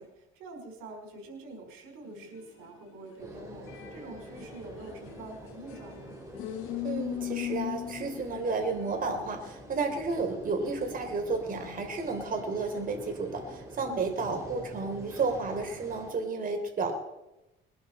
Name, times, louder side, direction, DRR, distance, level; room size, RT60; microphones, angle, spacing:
voice 1, 0.0-6.2 10.2-10.4 13.8-14.1, right 2 dB, 85° right, 2 dB, 4.7 m, -46 dB
sound 1, 2.1-8.6 8.9-10.0 10.6-12.0 12.5-12.6 13.3-13.4, left 12 dB, 90° left, 2.0 m, -40 dB
sound 2, 3.2-16.1, right 1 dB, 15° right, 4.3 m, -46 dB
voice 2, 6.8-16.9, right 4 dB, 40° right, 4 dB, 3.6 m, -32 dB
21.0 x 11.5 x 4.3 m, 0.96 s
cardioid pair, 100°, 21 cm